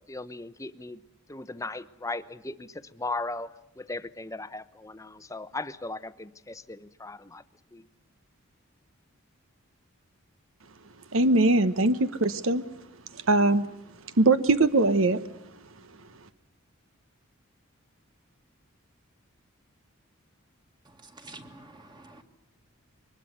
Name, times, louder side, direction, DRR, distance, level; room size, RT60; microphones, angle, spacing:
voice 1, 0.1-1.0 1.3-7.4 7.7-7.8, left 2 dB, 15° left, 0.8 m, -37 dB
voice 2, 11.1-12.6 13.3-13.7 14.2-15.2, right 2 dB, 65° right, 1.0 m, -21 dB
voice 3, 21.0-22.2, right 2 dB, 20° right, 2.0 m, -48 dB
23.5 x 20.5 x 8.0 m
head